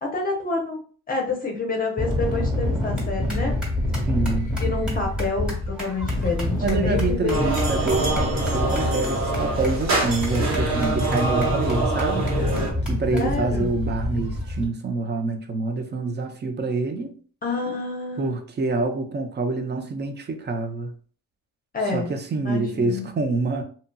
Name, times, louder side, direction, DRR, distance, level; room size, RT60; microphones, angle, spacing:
voice 1, 0.0-0.8 1.1-3.6 4.6-7.5 13.1-13.7 17.4-18.3 21.7-22.1 22.4-23.1, left 3 dB, 30° left, 0.6 m, -28 dB
sound 1, 2.0-14.6, left 1 dB, 5° right, 1.2 m, -26 dB
voice 2, 4.1-4.6 6.6-12.6 12.9-17.1 18.2-20.9 21.9-23.6, right 3 dB, 35° right, 0.6 m, -26 dB
sound 2, 7.3-12.7, right 3 dB, 65° right, 1.2 m, -25 dB
2.7 x 2.6 x 2.2 m
cardioid pair, 90°, 30 cm